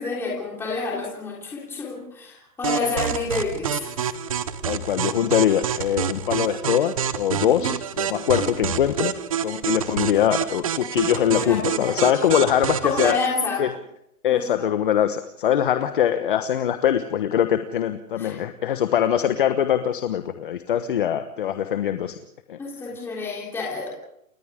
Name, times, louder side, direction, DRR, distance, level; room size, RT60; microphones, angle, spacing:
voice 1, 0.0-3.9 7.4-7.7 11.3-12.0 12.8-13.7 14.3-14.7 18.2-18.4 22.6-23.9, left 4 dB, 5° left, -4 dB, 3.5 m, -29 dB
sound 1, 2.6-13.3, right 9 dB, 25° right, 0.8 m, -27 dB
voice 2, 4.6-9.1 9.4-13.2 13.6-13.7 14.2-22.1 22.5-22.6, left 10 dB, 35° left, 9 dB, 1.2 m, -22 dB
29.5 x 25.0 x 3.7 m, 0.77 s
hypercardioid pair, 170°, 43 cm